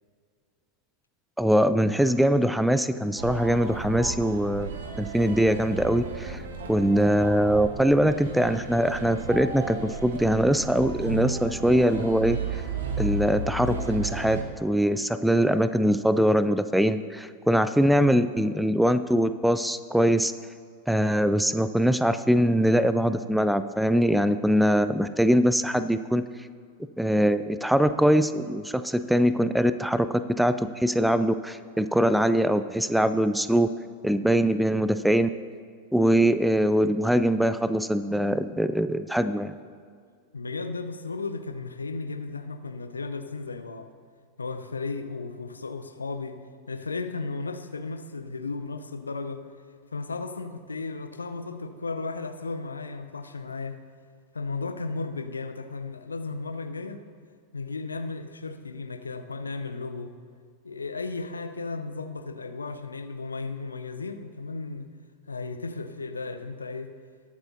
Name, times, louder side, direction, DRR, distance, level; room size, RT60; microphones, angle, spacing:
voice 1, 1.4-4.7 5.0-6.4 6.7-12.6 13.0-20.3 20.9-26.2 27.0-33.7 34.0-35.3 35.9-39.6, equal, ahead, 12 dB, 0.3 m, -22 dB
sound 1, 3.2-14.4, right 4 dB, 60° right, 1.0 m, -34 dB
voice 2, 40.3-43.9 44.4-46.4 46.7-49.5 49.9-53.8 54.3-57.0 57.5-60.2 60.6-64.9 65.3-66.9, left 3 dB, 75° left, 8 dB, 0.6 m, -35 dB
20.0 x 8.1 x 2.7 m, 2.1 s
figure-of-eight pair, 90°, 0 cm